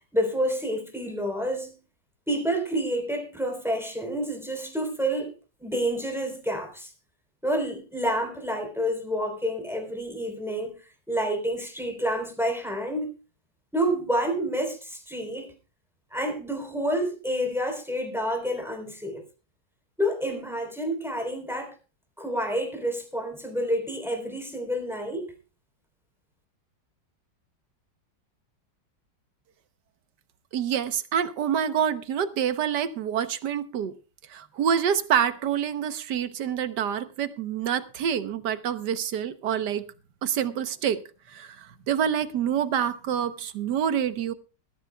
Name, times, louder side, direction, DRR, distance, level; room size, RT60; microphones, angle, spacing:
voice 1, 0.1-1.8 2.3-5.3 5.6-6.9 7.4-10.7 11.1-13.1 13.7-15.5 16.1-19.2 20.0-21.7 22.2-25.3, equal, ahead, 3.6 m, -29 dB
voice 2, 30.5-34.0 34.3-39.8 40.2-41.0 41.3-44.3, right 8 dB, 70° right, 1.5 m, -27 dB
20.5 x 13.5 x 2.3 m
omnidirectional pair, 1.9 m